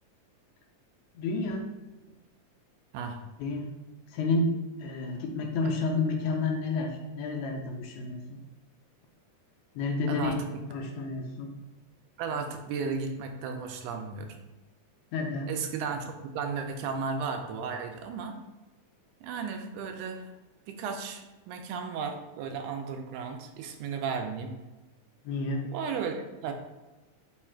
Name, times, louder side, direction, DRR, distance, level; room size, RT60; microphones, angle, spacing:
voice 1, 1.2-1.7 3.4-3.7 4.1-4.5 4.8-8.2 9.8-10.4 10.7-11.5 15.1-15.5 25.2-25.7, left 3 dB, 80° left, 2 dB, 1.8 m, -30 dB
voice 2, 10.1-10.6 12.2-14.4 15.5-18.4 19.2-20.3 20.7-24.5 25.7-26.5, right 5 dB, 85° right, 4 dB, 2.0 m, -34 dB
5.0 x 2.3 x 4.3 m, 1.1 s
omnidirectional pair, 3.5 m